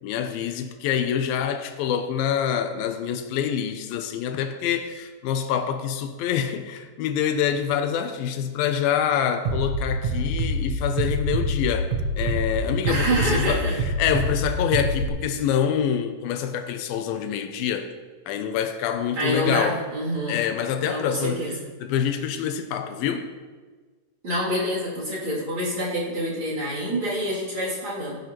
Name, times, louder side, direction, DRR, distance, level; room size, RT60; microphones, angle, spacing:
voice 1, 0.0-13.6 14.0-17.9 18.3-19.8 20.3-21.5 21.8-23.3, left 8 dB, 90° left, 2.5 m, -26 dB
Bass drum, 9.4-15.1, equal, 75° right, 1.4 m, -26 dB
voice 2, 12.9-13.8 19.1-20.4 20.8-21.7 24.2-28.2, equal, 35° right, 3.7 m, -27 dB
17.0 x 10.0 x 3.1 m
omnidirectional pair, 4.2 m